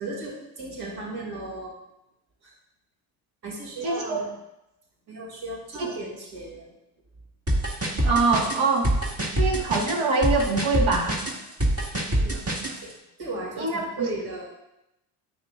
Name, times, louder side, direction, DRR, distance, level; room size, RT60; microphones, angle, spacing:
voice 1, 0.0-1.7 2.4-2.5 3.4-4.3 5.1-6.7 12.2-12.4 12.8-12.9 13.2-14.5, right 2 dB, 50° right, -2 dB, 2.8 m, -35 dB
voice 2, 3.8-4.3 5.8-5.9 8.0-8.9 9.3-11.2 13.6-14.1, right 3 dB, 70° right, 1 dB, 1.8 m, -24 dB
sound 1, 7.5-12.7, right 1 dB, 30° right, 2.0 m, -25 dB
9.3 x 7.4 x 2.5 m, 0.89 s
hypercardioid pair, 60°, 49 cm